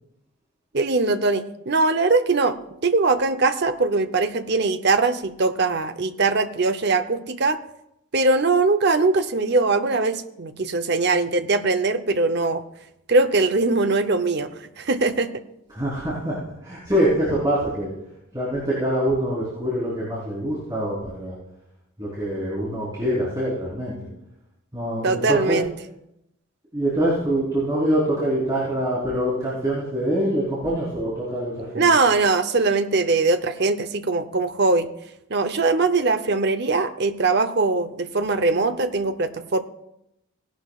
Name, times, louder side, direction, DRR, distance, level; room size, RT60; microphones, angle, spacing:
voice 1, 0.7-2.6 2.8-7.6 8.1-12.6 13.1-15.4 25.0-25.7 31.7-34.9 35.3-39.6, right 3 dB, 50° right, 9 dB, 0.8 m, -21 dB
voice 2, 15.7-17.9 18.3-21.3 22.0-23.9 24.7-25.6 26.7-31.9, right 1 dB, 20° right, -8 dB, 3.6 m, -24 dB
18.5 x 11.5 x 2.4 m, 0.82 s
head